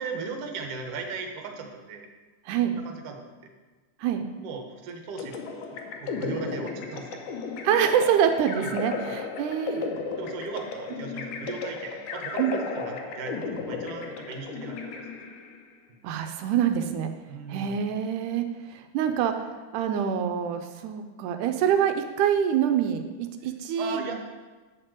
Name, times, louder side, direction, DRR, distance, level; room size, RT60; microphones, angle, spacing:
voice 1, 0.0-2.1 2.7-3.3 4.4-5.6 6.0-7.3 8.6-8.7 9.1-9.2 10.2-15.0 15.9-16.1 17.3-17.8 23.8-24.1, right 4 dB, 60° right, 3 dB, 1.9 m, -37 dB
sound 1, 5.2-15.6, left 4 dB, 90° left, 2.5 m, -35 dB
voice 2, 7.6-9.9 12.4-12.5 16.0-17.1 17.5-18.4 18.7-19.3 19.7-24.0, right 8 dB, 85° right, 6 dB, 2.1 m, -25 dB
9.8 x 4.4 x 7.7 m, 1.3 s
omnidirectional pair, 3.5 m